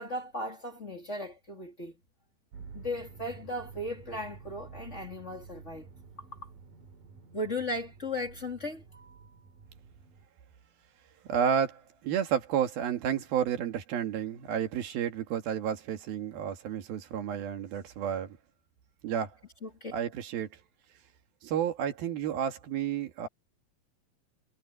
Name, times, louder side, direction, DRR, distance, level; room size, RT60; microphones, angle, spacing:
voice 1, 0.0-2.0 2.7-5.9 7.3-9.4 19.6-19.9, left 1 dB, 20° left, 2.6 m, -37 dB
sound 1, 2.5-10.3, right 5 dB, 65° right, 4.6 m, -50 dB
voice 2, 11.3-18.4 19.0-19.3 19.9-20.5 21.4-23.3, right 8 dB, 85° right, 3.8 m, -31 dB
omnidirectional pair, 4.1 m